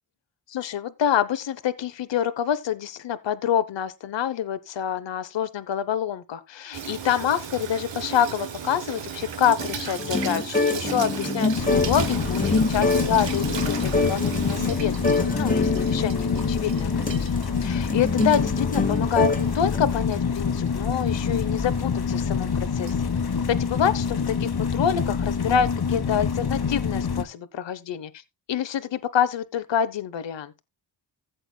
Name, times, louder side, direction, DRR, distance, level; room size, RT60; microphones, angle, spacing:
voice 1, 0.5-17.3 17.6-23.1 23.5-28.1 28.5-30.5, left 9 dB, 75° left, 0.8 m, -27 dB
Water tap faucet / Sink (filling or washing), 6.7-24.2, right 7 dB, 85° right, 1.1 m, -37 dB
sound 1, 9.6-19.9, left 3 dB, 20° left, 1.2 m, -26 dB
sound 2, 11.5-27.2, left 6 dB, 60° left, 1.3 m, -26 dB
16.0 x 7.8 x 2.2 m
cardioid pair, 60°, 43 cm